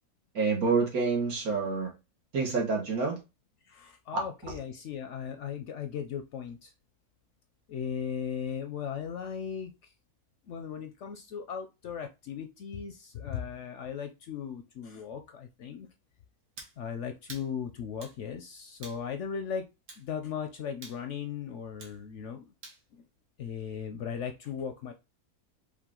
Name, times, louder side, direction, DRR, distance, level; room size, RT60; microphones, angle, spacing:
voice 1, 0.4-1.9 2.3-3.2, right 4 dB, 75° right, 1.8 m, -27 dB
voice 2, 3.7-6.7 7.7-9.7 10.5-15.9 16.8-19.7 20.0-22.5 23.4-24.9, left 7 dB, 65° left, 0.8 m, -37 dB
sound 1, 16.6-16.8 17.3-17.5 18.0-18.2 18.8-19.0 19.9-20.1 20.8-21.0 21.8-22.0 22.6-22.8, right 3 dB, 60° right, 1.5 m, -47 dB
5.2 x 2.5 x 3.7 m
omnidirectional pair, 1.6 m